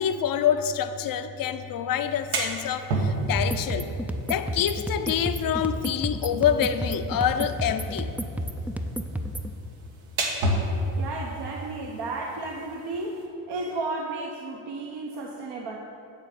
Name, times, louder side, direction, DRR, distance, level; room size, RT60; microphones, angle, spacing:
voice 1, 0.0-3.9 4.3-8.1, left 9 dB, 45° left, 9 dB, 0.6 m, -26 dB
sound 1, 2.0-13.3, right 1 dB, 75° right, 1.4 m, -33 dB
sound 2, 3.3-9.5, equal, 5° right, 0.4 m, -31 dB
voice 2, 10.9-15.8, right 2 dB, 55° right, 0 dB, 0.9 m, -33 dB
9.1 x 3.8 x 7.0 m, 2.8 s
supercardioid pair, 70°, 48 cm